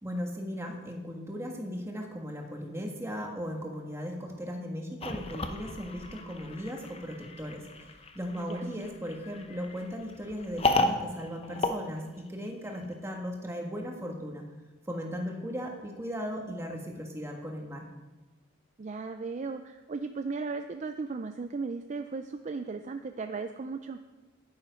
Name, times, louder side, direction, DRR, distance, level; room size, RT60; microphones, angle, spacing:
voice 1, 0.0-14.4 14.9-17.9, equal, 15° right, 2 dB, 1.4 m, -37 dB
sound 1, 5.0-12.7, left 2 dB, 30° left, 0.7 m, -34 dB
voice 2, 18.8-24.0, right 4 dB, 35° right, 7 dB, 0.4 m, -36 dB
10.5 x 9.2 x 5.1 m, 1.2 s
head